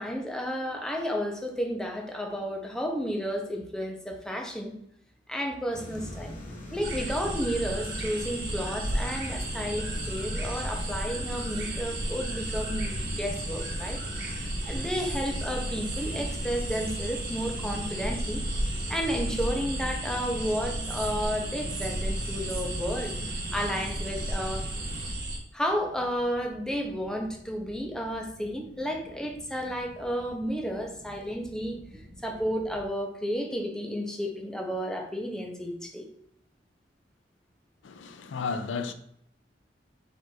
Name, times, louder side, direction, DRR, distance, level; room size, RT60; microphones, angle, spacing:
voice 1, 0.0-4.8 5.3-6.3 6.7-18.4 18.9-23.1 23.5-24.7 25.5-36.1, equal, 5° left, 0.6 m, -32 dB
sound 1, 5.7-25.1, left 1 dB, 50° left, 1.2 m, -41 dB
sound 2, 6.8-25.4, right 1 dB, 55° right, 1.2 m, -33 dB
sound 3, 25.6-32.9, equal, 85° right, 0.9 m, -51 dB
voice 2, 37.8-38.9, left 5 dB, 90° left, 0.4 m, -33 dB
4.3 x 2.5 x 4.5 m
head